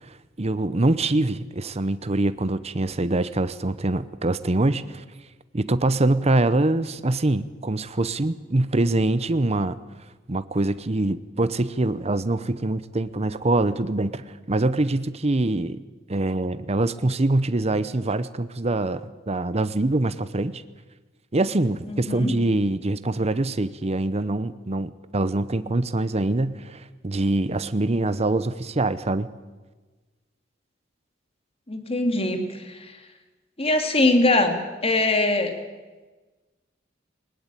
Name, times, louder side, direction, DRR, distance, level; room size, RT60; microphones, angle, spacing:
voice 1, 0.4-5.0 5.5-9.8 10.3-15.8 16.1-20.6 21.3-29.3, right 2 dB, 35° right, 14 dB, 0.8 m, -24 dB
voice 2, 21.9-22.3 31.7-32.9 33.6-34.6 34.8-35.6, left 2 dB, 30° left, 6 dB, 2.5 m, -22 dB
20.0 x 19.5 x 9.0 m, 1.3 s
head